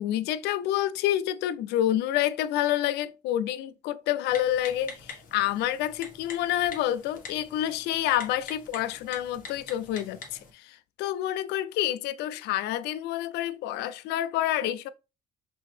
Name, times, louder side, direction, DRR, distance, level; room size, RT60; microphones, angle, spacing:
voice 1, 0.0-14.9, left 12 dB, 85° left, 0.4 m, -28 dB
Typing, 4.3-10.5, left 5 dB, 55° left, 1.4 m, -45 dB
5.3 x 2.8 x 3.3 m
cardioid pair, 110°, 17 cm